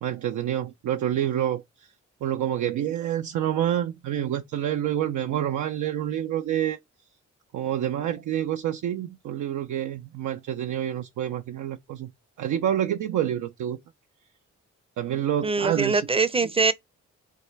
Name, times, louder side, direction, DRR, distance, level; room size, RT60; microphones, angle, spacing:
voice 1, 0.0-1.6 2.2-6.8 7.5-12.1 12.4-13.8 15.0-16.1, right 11 dB, 65° right, 0.5 m, -27 dB
voice 2, 15.4-16.7, right 4 dB, 20° right, 0.6 m, -23 dB
4.1 x 2.1 x 3.2 m
supercardioid pair, 45°, 32 cm